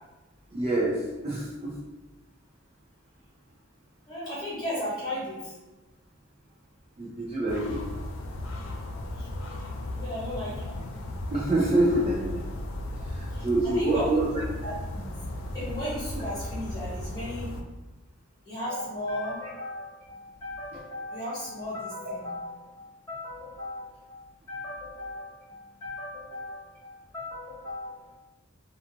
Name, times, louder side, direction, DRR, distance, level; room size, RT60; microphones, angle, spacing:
voice 1, 0.5-1.8 7.0-7.8 11.3-12.4 13.1-14.3, right 2 dB, 30° right, -6 dB, 0.4 m, -26 dB
voice 2, 4.1-5.5 9.2-9.3 9.9-10.8 13.3-14.2 14.6-15.2 15.5-17.6 18.4-28.2, left 1 dB, 20° left, -9 dB, 1.2 m, -36 dB
sound 1, 7.5-17.6, left 1 dB, 75° left, 0.4 m, -36 dB
2.5 x 2.2 x 2.9 m, 1.1 s
head